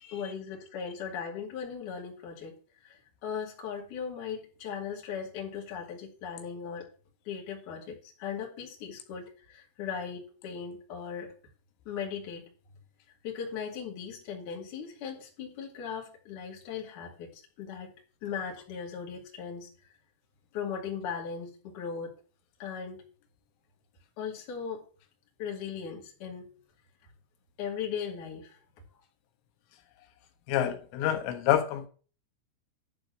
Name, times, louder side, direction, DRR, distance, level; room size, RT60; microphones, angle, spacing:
voice 1, 0.1-6.9 7.2-11.3 11.8-12.5 13.2-17.9 18.2-19.9 20.5-22.1 22.6-23.0 24.2-24.8 25.4-26.5 27.6-28.6, left 7 dB, 50° left, 3.2 m, -38 dB
voice 2, 30.5-31.9, left 11 dB, 85° left, 3.3 m, -28 dB
11.5 x 3.9 x 7.4 m
omnidirectional pair, 5.6 m